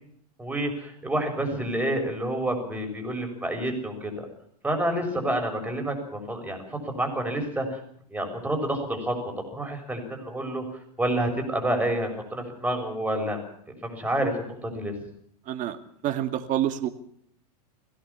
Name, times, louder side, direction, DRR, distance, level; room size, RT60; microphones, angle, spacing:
voice 1, 0.4-4.3 4.6-6.6 6.9-7.8 8.1-9.1 9.5-10.6 11.0-13.4 13.8-14.9, right 1 dB, 5° right, 2 dB, 6.9 m, -28 dB
voice 2, 15.5-15.8 16.0-16.9, right 11 dB, 40° right, 8 dB, 2.4 m, -27 dB
22.0 x 17.0 x 7.2 m, 0.64 s
hypercardioid pair, 110°, 21 cm